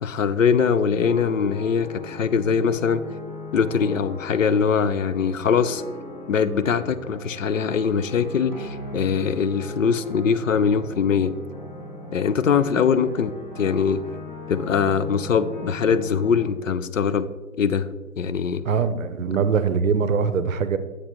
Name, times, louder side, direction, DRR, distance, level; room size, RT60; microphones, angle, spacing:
voice 1, 0.0-3.1 3.5-5.8 6.3-11.4 12.1-14.0 14.5-17.3 17.6-17.9 18.2-18.6, left 6 dB, 60° left, 14 dB, 0.5 m, -22 dB
sound 1, 0.6-16.5, left 2 dB, 30° left, 1.1 m, -38 dB
voice 2, 18.7-20.8, right 6 dB, 60° right, 12 dB, 0.6 m, -22 dB
7.5 x 6.5 x 3.0 m, 1.3 s
hypercardioid pair, 165°, 45 cm